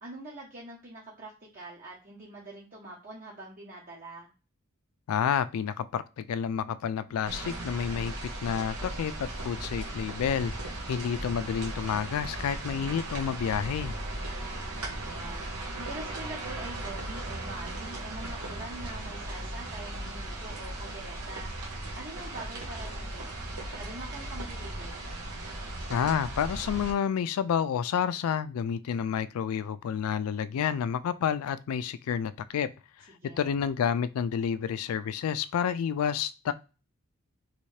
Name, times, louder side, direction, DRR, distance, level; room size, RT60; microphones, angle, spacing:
voice 1, 0.0-4.3 13.9-14.6 15.0-15.4 15.8-21.5 21.9-23.4 23.7-25.0 33.2-33.5, right 2 dB, 35° right, 0.9 m, -44 dB
voice 2, 5.1-8.1 8.4-13.9 25.9-32.7 33.4-36.5, left 8 dB, 75° left, 0.3 m, -29 dB
sound 1, 7.2-26.9, right 1 dB, 85° right, 1.0 m, -37 dB
3.2 x 2.7 x 3.2 m
head